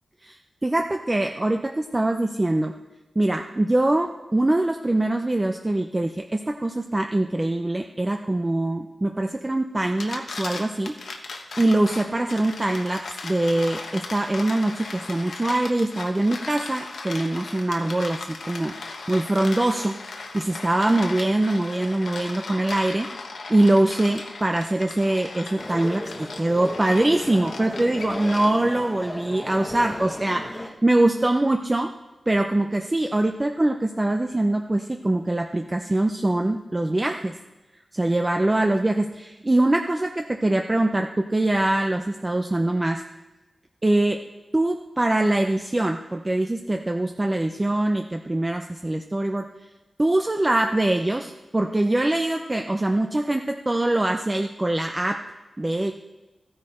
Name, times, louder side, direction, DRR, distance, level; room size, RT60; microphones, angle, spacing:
voice 1, 0.6-2.7 3.2-10.9 11.6-18.7 19.1-20.0 20.3-23.1 23.5-31.9 32.3-37.3 37.9-43.0 43.8-44.2 44.5-49.4 50.0-55.2 55.6-55.9, right 1 dB, 20° right, 4 dB, 0.5 m, -23 dB
sound 1, 9.8-28.8, left 3 dB, 80° left, 1.3 m, -37 dB
sound 2, 25.6-30.7, left 1 dB, 15° left, 1.1 m, -35 dB
14.5 x 10.0 x 4.3 m, 1.1 s
wide cardioid pair, 155°, 0 cm